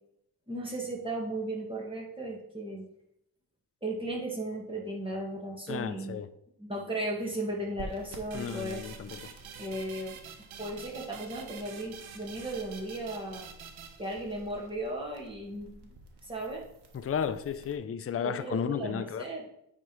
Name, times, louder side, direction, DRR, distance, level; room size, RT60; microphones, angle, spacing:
voice 1, 0.5-2.9 3.8-6.2 6.6-8.9 9.6-10.2 10.6-13.5 14.0-15.9 16.2-16.6 18.1-19.5, right 1 dB, 10° right, 2.1 m, -36 dB
voice 2, 5.7-6.3 8.3-9.2 16.9-19.3, left 7 dB, 30° left, 0.5 m, -33 dB
sound 1, 7.8-17.7, right 2 dB, 60° right, 1.5 m, -51 dB
sound 2, 8.3-14.7, right 7 dB, 85° right, 0.9 m, -48 dB
9.0 x 3.7 x 4.7 m
cardioid pair, 75°, 46 cm